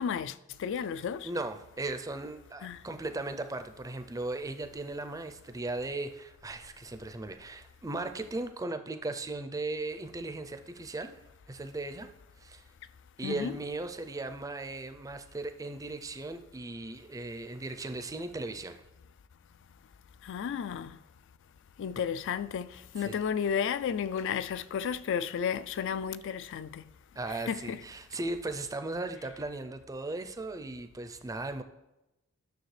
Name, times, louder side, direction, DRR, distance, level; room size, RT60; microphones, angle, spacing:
voice 1, 0.0-1.3 2.6-2.8 13.2-13.5 20.2-21.0 21.8-26.8 27.5-27.8, left 7 dB, 60° left, 0.3 m, -33 dB
voice 2, 1.2-11.2 11.5-12.1 12.4-12.6 13.2-18.8 23.0-23.2 27.2-31.6, right 2 dB, 15° right, 0.4 m, -37 dB
10.5 x 6.4 x 3.3 m
head